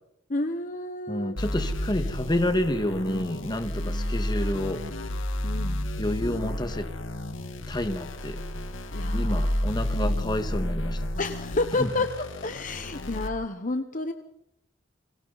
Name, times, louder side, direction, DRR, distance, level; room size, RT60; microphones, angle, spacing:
voice 1, 0.3-1.3 5.4-5.8 8.9-9.5 11.2-12.1 12.4-14.1, left 2 dB, 40° left, 7 dB, 1.1 m, -30 dB
voice 2, 1.1-4.8 6.0-6.9 7.7-8.4 9.1-11.1 11.8-11.9, left 1 dB, 20° left, 8 dB, 1.7 m, -29 dB
sound 1, 1.4-13.3, left 1 dB, 85° left, 1.9 m, -31 dB
29.5 x 23.5 x 4.1 m, 0.82 s
head